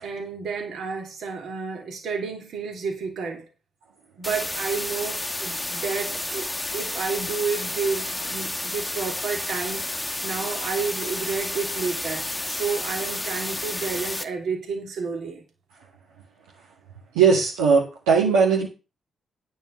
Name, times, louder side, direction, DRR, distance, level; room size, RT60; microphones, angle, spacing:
voice 1, 0.0-3.5 4.2-9.8 10.2-15.5, right 5 dB, 65° right, 3.0 m, -30 dB
sound 1, 4.2-14.2, left 1 dB, 15° left, 1.1 m, -31 dB
voice 2, 17.1-18.7, right 5 dB, 80° right, 2.0 m, -18 dB
9.5 x 5.4 x 6.6 m
hypercardioid pair, 40°, 0 cm